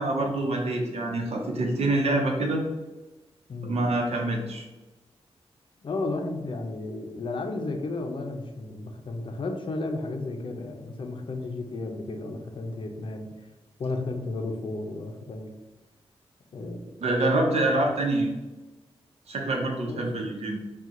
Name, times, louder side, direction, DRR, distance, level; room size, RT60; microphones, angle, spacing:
voice 1, 0.0-2.6 3.7-4.7 17.0-18.3 19.3-20.6, right 2 dB, 80° right, 1 dB, 0.9 m, -26 dB
voice 2, 5.8-13.3 13.8-15.5 16.5-16.9 17.9-18.0 19.9-20.0, left 2 dB, 55° left, 3 dB, 0.6 m, -33 dB
4.4 x 2.3 x 3.7 m, 1.1 s
wide cardioid pair, 170°, 11 cm